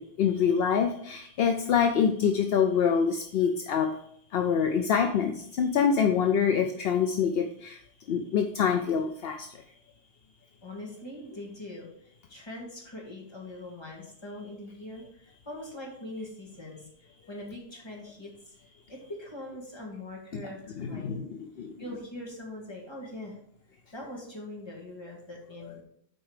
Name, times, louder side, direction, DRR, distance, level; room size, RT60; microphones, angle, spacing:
voice 1, 0.0-4.0 4.3-7.8 8.1-9.5 20.3-20.4 20.8-21.7, left 7 dB, 70° left, 6 dB, 0.8 m, -26 dB
voice 2, 10.6-18.6 18.9-20.6 20.9-21.2 21.8-23.4 23.9-25.8, left 1 dB, 25° left, -2 dB, 2.2 m, -42 dB
8.1 x 4.6 x 5.0 m, 0.69 s
omnidirectional pair, 1.1 m